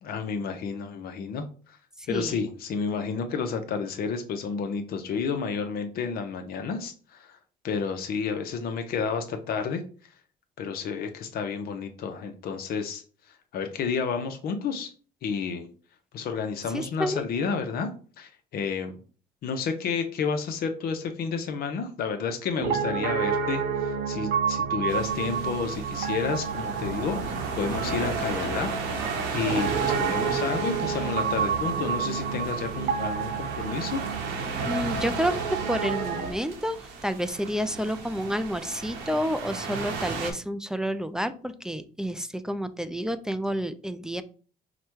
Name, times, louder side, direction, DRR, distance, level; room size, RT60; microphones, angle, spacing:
voice 1, 0.0-1.8 2.1-7.4 7.6-9.8 10.6-13.0 13.5-14.9 15.2-15.7 16.1-17.9 18.2-19.0 19.4-28.7 29.3-34.0, left 5 dB, 65° left, 6 dB, 0.7 m, -31 dB
voice 2, 2.0-2.4 16.7-17.2 34.7-35.3 35.7-44.2, equal, 5° right, 11 dB, 0.3 m, -30 dB
Piano, 22.6-36.3, right 6 dB, 70° right, 0.8 m, -30 dB
sound 1, 24.9-40.3, right 4 dB, 85° right, 1.2 m, -35 dB
4.9 x 2.2 x 4.5 m, 0.40 s
cardioid pair, 110°, 17 cm